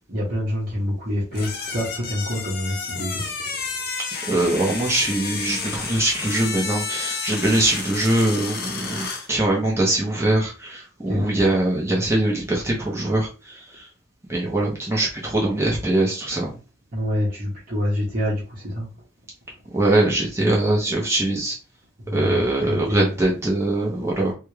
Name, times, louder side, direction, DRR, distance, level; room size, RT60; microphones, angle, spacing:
voice 1, 0.1-3.2 11.1-11.2 16.9-18.9 22.0-22.4 22.7-23.1, left 1 dB, 45° right, -5 dB, 1.1 m, -26 dB
sound 1, 1.3-9.3, left 4 dB, 45° left, 0.7 m, -31 dB
voice 2, 4.3-13.9 14.3-16.6 19.7-21.6 22.1-24.3, right 1 dB, 15° right, -3 dB, 0.8 m, -22 dB
3.5 x 2.3 x 3.1 m, 0.32 s
head